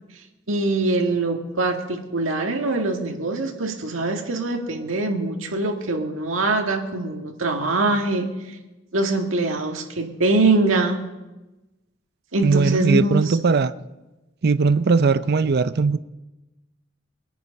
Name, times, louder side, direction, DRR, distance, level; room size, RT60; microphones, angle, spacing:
voice 1, 0.5-8.6 8.9-11.0 12.3-13.4, right 2 dB, 80° right, 2 dB, 2.0 m, -23 dB
voice 2, 12.4-13.7 14.4-16.0, right 4 dB, 50° right, 13 dB, 0.5 m, -19 dB
23.0 x 9.3 x 5.5 m, 1.0 s
head